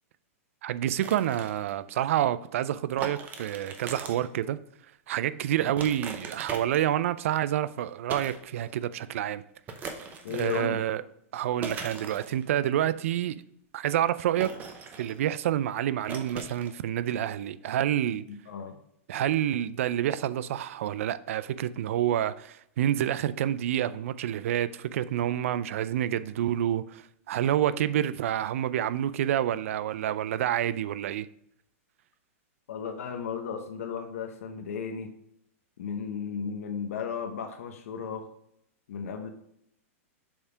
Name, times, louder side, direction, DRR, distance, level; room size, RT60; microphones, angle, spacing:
voice 1, 0.6-4.6 5.1-9.4 10.3-11.0 11.3-13.4 13.7-14.5 15.0-18.2 19.1-31.3, right 11 dB, 70° right, 0.4 m, -28 dB
sound 1, 1.0-1.7 3.0-4.3 5.8-7.0 8.1-8.4 8.7-8.8 9.7-10.7 11.6-12.4 14.4-15.3 16.1-16.7, right 4 dB, 20° right, 0.8 m, -39 dB
voice 2, 10.2-10.8 18.3-18.8 32.7-35.1 35.8-38.3 38.9-39.3, left 6 dB, 75° left, 0.8 m, -35 dB
7.2 x 3.4 x 4.8 m
hypercardioid pair, 145°, 8 cm